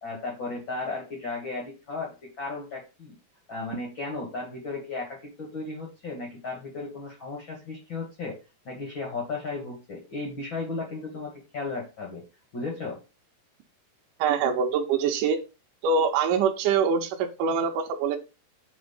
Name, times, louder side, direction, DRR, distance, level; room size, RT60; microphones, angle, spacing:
voice 1, 0.0-3.2 3.5-8.4 8.6-12.2 12.5-13.0, left 3 dB, 60° left, -2 dB, 1.2 m, -35 dB
voice 2, 14.2-15.4 15.8-18.2, right 6 dB, 80° right, 3 dB, 1.9 m, -24 dB
5.1 x 4.2 x 5.4 m, 0.30 s
omnidirectional pair, 4.7 m